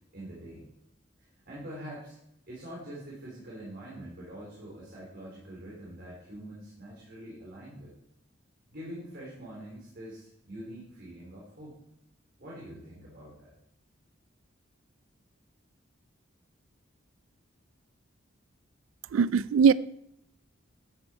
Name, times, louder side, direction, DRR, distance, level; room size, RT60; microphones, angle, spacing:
voice 1, 0.1-0.6 1.2-2.2 2.5-7.9 8.7-11.7 12.4-13.5, right 1 dB, 55° right, 3.9 m, -44 dB
voice 2, 19.1-19.7, right 6 dB, 85° right, 0.3 m, -20 dB
13.0 x 9.0 x 4.6 m
head